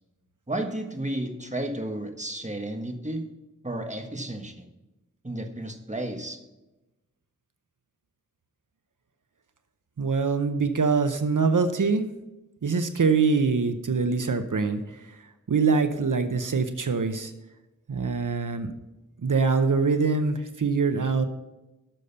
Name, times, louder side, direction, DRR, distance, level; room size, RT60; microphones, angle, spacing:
voice 1, 0.5-3.3 3.6-4.7 5.2-6.4, right 1 dB, 20° right, 5 dB, 1.5 m, -32 dB
voice 2, 10.0-12.0 12.6-17.3 17.9-18.7 19.2-21.3, right 4 dB, 75° right, 8 dB, 0.8 m, -24 dB
12.0 x 6.6 x 5.5 m, 1.0 s
wide cardioid pair, 45°, 31 cm